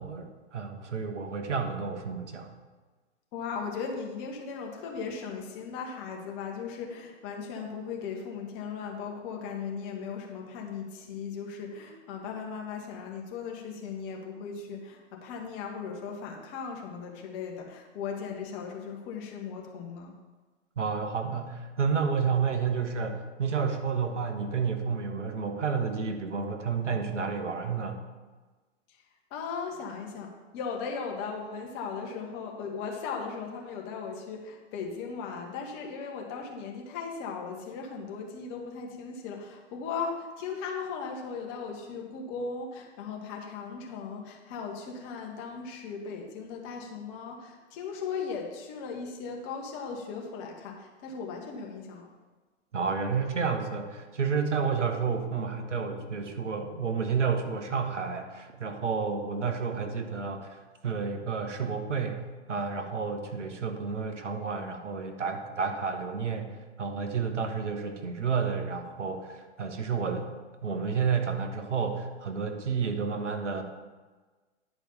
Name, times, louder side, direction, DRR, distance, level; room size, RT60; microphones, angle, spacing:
voice 1, 0.0-2.5 20.8-28.0 52.7-62.2 62.5-70.3 70.6-73.6, right 5 dB, 80° right, 5 dB, 1.2 m, -30 dB
voice 2, 3.3-20.1 29.3-52.1, left 5 dB, 35° left, 1 dB, 1.6 m, -37 dB
10.5 x 5.0 x 5.6 m, 1.3 s
figure-of-eight pair, 110°, 36 cm